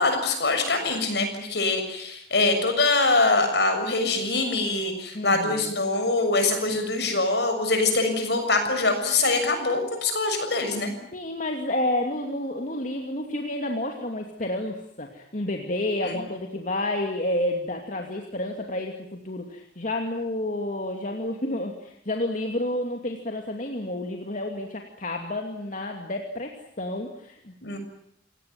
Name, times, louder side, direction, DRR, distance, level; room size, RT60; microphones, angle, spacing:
voice 1, 0.0-10.9 16.0-16.1 27.6-27.8, left 3 dB, 65° left, 6 dB, 6.9 m, -24 dB
voice 2, 5.1-5.7 11.1-27.5, left 1 dB, 45° left, 3 dB, 2.6 m, -30 dB
28.5 x 18.0 x 9.3 m, 0.75 s
head